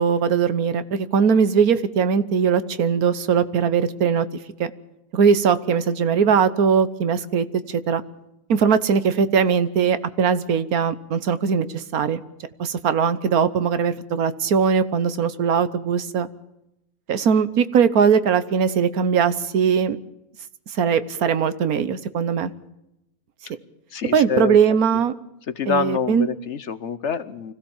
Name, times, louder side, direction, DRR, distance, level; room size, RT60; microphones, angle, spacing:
voice 1, 0.0-4.3 4.6-4.7 5.1-8.0 8.5-12.2 12.6-16.3 17.1-20.0 20.7-22.5 24.1-25.1 25.6-26.3, right 6 dB, 85° right, 13 dB, 1.5 m, -20 dB
voice 2, 23.9-24.6 25.6-27.5, left 6 dB, 55° left, 14 dB, 1.2 m, -26 dB
25.0 x 16.0 x 7.2 m, 0.89 s
omnidirectional pair, 1.5 m